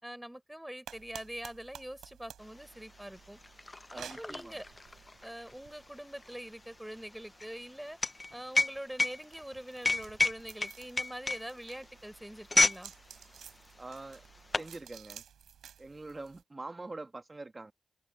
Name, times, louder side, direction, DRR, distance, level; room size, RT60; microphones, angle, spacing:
voice 1, 0.0-3.4 3.9-4.7 5.2-8.0 8.3-12.9, equal, 5° right, 5.4 m, -44 dB
sound 1, 0.9-16.4, right 9 dB, 85° right, 3.8 m, -54 dB
sound 2, 2.6-2.7 2.9-12.9 13.2-13.4 14.1-14.7, left 2 dB, 30° left, 0.8 m, -31 dB
voice 2, 3.9-4.6 13.8-14.2 14.6-15.2 15.8-17.7, right 2 dB, 35° right, 1.9 m, -44 dB
supercardioid pair, 45°, 0 cm